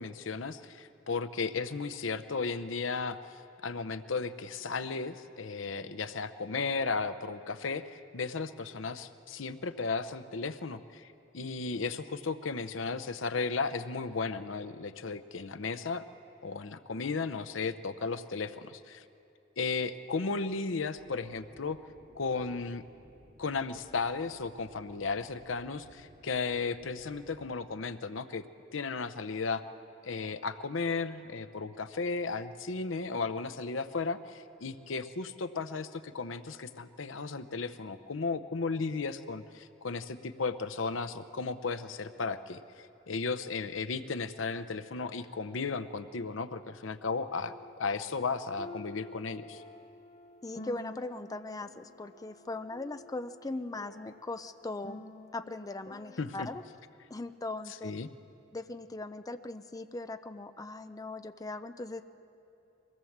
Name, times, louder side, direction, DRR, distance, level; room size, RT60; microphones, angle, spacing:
voice 1, 0.0-16.0 16.4-19.0 19.6-21.8 22.1-22.8 23.4-28.4 28.7-29.6 30.0-47.5 47.8-49.6 56.2-56.5 57.8-58.1, left 4 dB, 90° left, 12 dB, 0.8 m, -35 dB
sound 1, 20.9-27.6, equal, 90° right, 3.5 m, -59 dB
sound 2, 46.3-46.4 47.5-47.8 48.6-56.6, left 2 dB, 35° left, 1.0 m, -50 dB
voice 2, 50.4-55.0 55.3-56.6 57.1-57.9 58.5-62.0, left 2 dB, 20° left, 9 dB, 0.5 m, -39 dB
23.5 x 17.5 x 7.3 m, 2.8 s
head